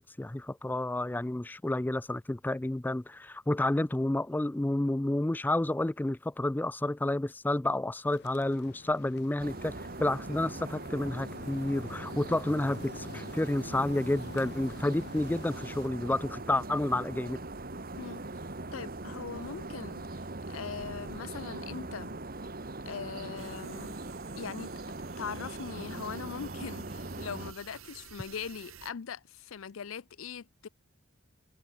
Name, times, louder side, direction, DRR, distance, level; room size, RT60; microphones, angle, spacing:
voice 1, 0.0-17.4, left 1 dB, 10° left, 0.3 m, -30 dB
sound 1, 8.0-15.9, left 3 dB, 55° left, 0.8 m, -48 dB
sound 2, 9.4-27.5, right 2 dB, 45° right, 2.0 m, -41 dB
voice 2, 18.7-20.2 20.5-22.1 22.9-23.9 24.4-24.7 25.2-30.7, left 6 dB, 85° left, 0.6 m, -41 dB
sound 3, 23.4-28.9, right 8 dB, 90° right, 1.1 m, -52 dB
head